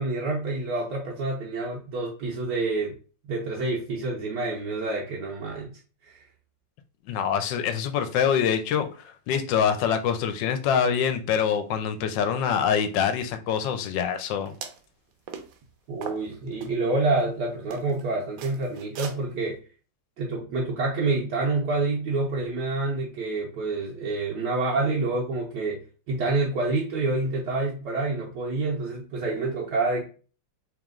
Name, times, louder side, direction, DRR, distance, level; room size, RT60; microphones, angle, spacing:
voice 1, 0.0-2.9 3.3-5.7 6.1-6.2 15.9-19.6 20.2-30.1, right 3 dB, 70° right, 1.3 m, -27 dB
voice 2, 7.1-14.5, left 7 dB, 80° left, 1.2 m, -25 dB
sound 1, 14.5-14.9 15.3-15.6 16.0-16.7 17.2-17.3 17.7-18.0 18.4-19.2, right 7 dB, 85° right, 1.4 m, -39 dB
3.4 x 3.0 x 3.6 m
omnidirectional pair, 2.0 m